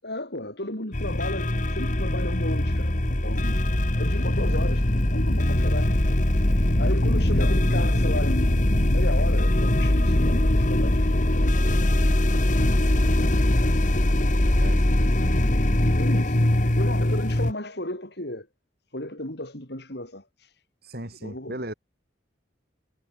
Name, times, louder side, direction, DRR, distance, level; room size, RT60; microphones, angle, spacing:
voice 1, 0.0-3.6 4.0-6.0 6.8-11.9 15.9-18.5 18.9-20.6 21.2-21.6, left 1 dB, 60° left, 6.6 m, -34 dB
sound 1, 0.9-17.5, left 1 dB, 45° left, 1.7 m, -22 dB
voice 2, 14.6-15.2 20.8-21.7, right 1 dB, 55° right, 6.5 m, -38 dB
head